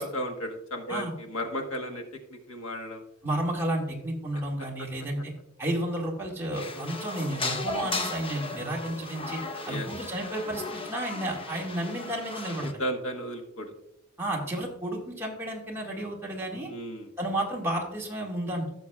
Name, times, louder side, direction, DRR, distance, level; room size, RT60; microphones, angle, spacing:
voice 1, 0.0-2.0 2.3-3.0 4.6-4.9 9.7-9.9 12.6-13.7 16.7-17.1, equal, 70° left, 4 dB, 1.4 m, -34 dB
voice 2, 3.2-5.3 5.6-9.4 9.7-12.7 14.2-16.7 17.2-18.7, right 1 dB, 10° right, -3 dB, 1.9 m, -32 dB
sound 1, 6.5-12.7, left 3 dB, 25° left, 0.8 m, -36 dB
16.0 x 6.3 x 2.4 m, 0.81 s
head